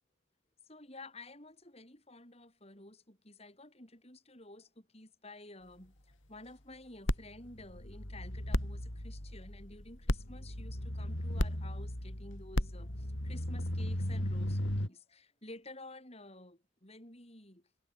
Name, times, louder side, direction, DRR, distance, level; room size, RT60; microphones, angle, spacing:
voice 1, 0.7-17.6, left 2 dB, 30° left, 6.5 m, -52 dB
sound 1, 7.1-14.9, left 1 dB, 75° left, 4.1 m, -35 dB
head